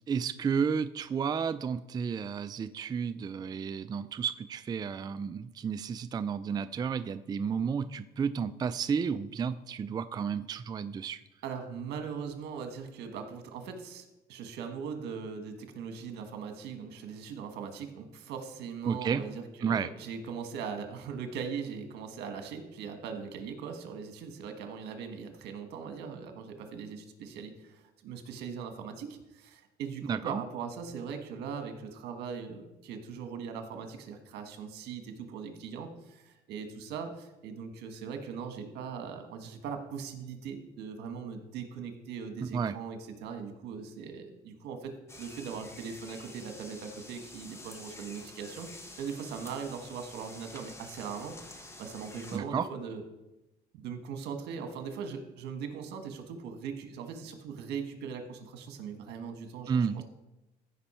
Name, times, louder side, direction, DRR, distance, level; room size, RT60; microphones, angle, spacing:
voice 1, 0.1-11.2 18.9-19.2 19.6-19.9 30.0-30.4 42.4-42.8 52.3-52.7 59.7-60.0, right 6 dB, 25° right, 12 dB, 0.3 m, -32 dB
voice 2, 11.4-48.7 49.0-53.0 53.7-60.0, right 6 dB, 80° right, 6 dB, 1.4 m, -40 dB
sound 1, 45.1-52.4, left 2 dB, 15° left, 1.2 m, -49 dB
14.5 x 5.4 x 4.3 m, 0.98 s
cardioid pair, 110°, 17 cm